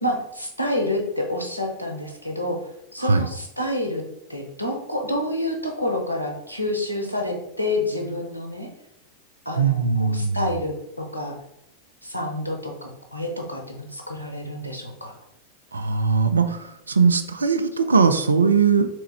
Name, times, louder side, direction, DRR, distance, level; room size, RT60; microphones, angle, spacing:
voice 1, 0.0-2.6 2.9-4.0 4.3-8.7 9.5-11.3 12.0-15.1, left 1 dB, 85° left, 2 dB, 0.6 m, -28 dB
voice 2, 9.6-10.4 15.7-18.9, right 5 dB, 75° right, 8 dB, 0.3 m, -20 dB
3.4 x 3.1 x 3.3 m, 0.80 s
figure-of-eight pair, 90°, 0 cm